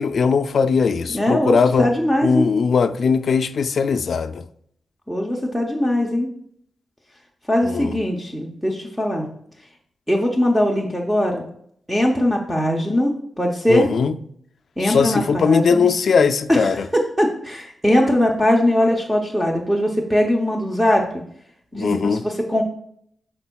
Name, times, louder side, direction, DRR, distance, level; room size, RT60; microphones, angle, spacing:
voice 1, 0.0-1.9 2.2-4.5 7.6-7.9 13.7-14.2 14.8-16.9 21.8-22.2, left 5 dB, 55° left, 0.3 m, -19 dB
voice 2, 1.1-2.5 5.1-6.3 7.5-9.3 10.1-11.4 11.9-13.1 13.4-13.9 14.8-15.8 16.5-21.1 21.7-22.6, equal, 5° right, 0.6 m, -20 dB
11.0 x 4.4 x 2.3 m
wide cardioid pair, 165°, 0 cm